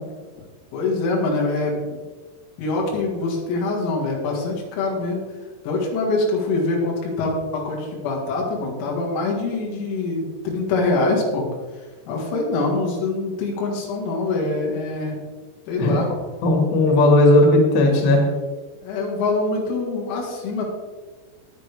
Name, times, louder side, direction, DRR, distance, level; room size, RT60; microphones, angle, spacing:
voice 1, 0.7-2.0 2.6-5.2 5.6-11.4 12.1-15.2 15.7-16.1 18.8-20.7, left 3 dB, 85° left, -1 dB, 4.9 m, -24 dB
voice 2, 16.4-18.2, left 2 dB, 60° left, 0 dB, 4.1 m, -16 dB
19.5 x 6.7 x 3.5 m, 1.3 s
omnidirectional pair, 6.0 m